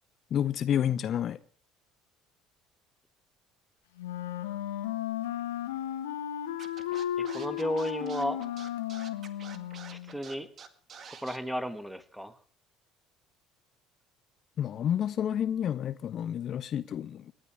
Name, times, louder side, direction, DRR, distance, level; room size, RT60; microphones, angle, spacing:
voice 1, 0.3-1.4 14.6-17.3, left 10 dB, 45° left, 0.7 m, -29 dB
Wind instrument woodwind instrument, 4.0-10.2, left 11 dB, 70° left, 1.7 m, -34 dB
Scratching (performance technique), 6.6-11.4, right 6 dB, 40° right, 1.9 m, -47 dB
voice 2, 7.2-8.4 9.9-10.5 11.0-12.4, equal, 5° right, 1.7 m, -34 dB
28.0 x 12.5 x 3.6 m
figure-of-eight pair, 60°, 0 cm